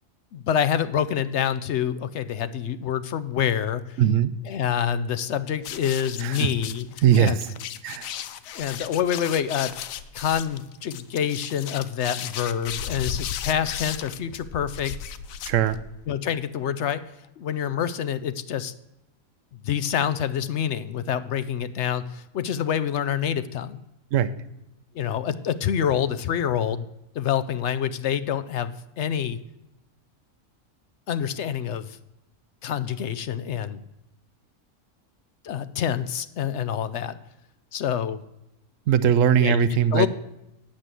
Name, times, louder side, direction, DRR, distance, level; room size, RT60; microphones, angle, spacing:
voice 1, 0.3-4.0 4.4-6.9 7.1-7.4 8.2-9.7 10.1-14.9 16.1-17.0 17.4-18.7 19.6-23.8 24.9-26.8 27.2-29.4 31.1-32.0 32.6-33.8 35.4-37.2 37.7-38.2 39.4-39.6 39.9-40.1, left 9 dB, 65° left, 13 dB, 0.8 m, -27 dB
voice 2, 4.0-4.4 6.2-6.5 7.0-7.4 7.8-8.1 15.5-15.8 24.1-24.3 38.9-40.1, right 9 dB, 75° right, 14 dB, 1.0 m, -20 dB
sound 1, 5.6-16.1, left 9 dB, 90° left, 1.1 m, -35 dB
8.9 x 8.2 x 7.5 m, 0.91 s
omnidirectional pair, 1.4 m